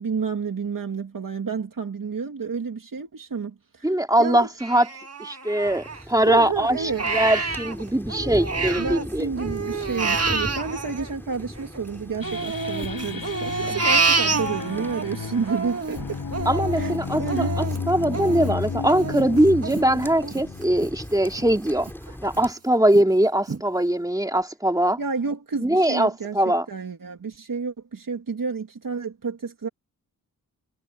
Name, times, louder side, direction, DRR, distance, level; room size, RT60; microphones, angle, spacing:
voice 1, 0.0-3.9 4.2-4.5 6.2-7.0 8.8-16.2 16.7-17.6 25.0-29.7, right 5 dB, 65° right, 2.4 m, -30 dB
voice 2, 3.8-4.9 5.2-9.3 13.7-13.8 16.4-21.9 22.2-25.0 25.6-26.7, right 1 dB, 10° right, 2.9 m, -22 dB
Crying sobbing, 4.6-6.3 6.7-9.0 9.4-11.8 12.2-15.0 15.4-20.9 21.3-21.4 21.9-22.4 22.9-23.0 23.5-23.6, right 4 dB, 45° right, 2.0 m, -28 dB
sound 1, 5.6-22.5, left 1 dB, 5° left, 3.6 m, -39 dB
sound 2, 12.2-21.6, left 5 dB, 70° left, 6.9 m, -32 dB
wide cardioid pair, 105°, 35 cm